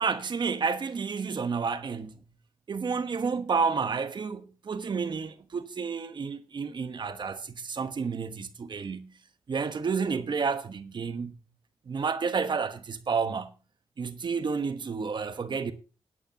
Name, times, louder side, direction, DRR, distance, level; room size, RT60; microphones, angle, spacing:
voice 1, 0.0-2.2 2.7-9.1 9.5-11.3 11.9-13.5 14.0-15.7, right 5 dB, 55° right, 1.2 m, -30 dB
17.5 x 8.8 x 2.9 m
cardioid pair, 60°, 9 cm